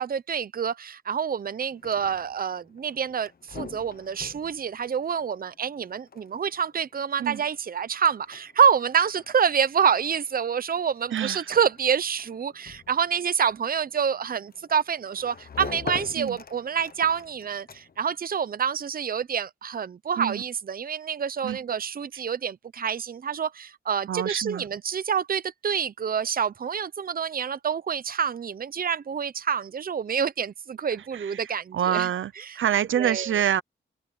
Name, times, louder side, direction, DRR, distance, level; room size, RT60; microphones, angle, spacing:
voice 1, 0.0-32.1 32.4-32.6 33.0-33.3, right 7 dB, 50° right, 0.7 m, -27 dB
sound 1, 1.6-18.2, left 6 dB, 50° left, 1.2 m, -45 dB
voice 2, 11.1-11.5 16.2-16.4 20.2-20.4 21.4-21.6 22.1-22.2 24.1-24.6 31.1-33.6, right 10 dB, 85° right, 0.8 m, -27 dB
cardioid pair, 90°, 20 cm